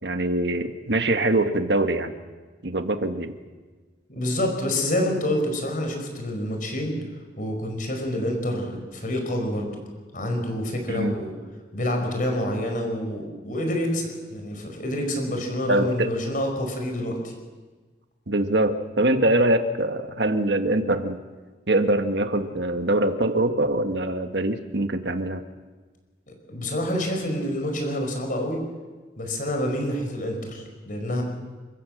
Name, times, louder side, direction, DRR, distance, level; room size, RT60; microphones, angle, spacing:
voice 1, 0.0-2.1 2.6-3.4 10.9-11.1 15.7-16.1 18.3-21.2 21.7-25.4, right 1 dB, 65° right, 8 dB, 1.5 m, -23 dB
voice 2, 4.1-7.0 7.4-9.8 10.1-11.3 11.7-17.3 26.5-28.6 29.2-31.2, left 1 dB, 45° left, 3 dB, 5.1 m, -27 dB
28.0 x 15.0 x 7.8 m, 1.4 s
head